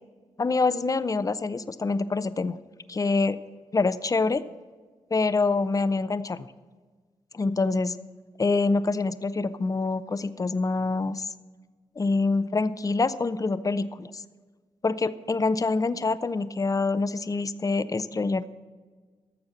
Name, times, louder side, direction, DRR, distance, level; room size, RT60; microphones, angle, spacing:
voice 1, 0.4-2.6 2.9-3.4 3.7-4.4 5.1-6.5 7.3-8.0 8.4-11.3 12.0-14.2 14.8-18.5, left 3 dB, 30° left, 14 dB, 0.6 m, -26 dB
11.5 x 7.0 x 7.4 m, 1.4 s
supercardioid pair, 50°, 12 cm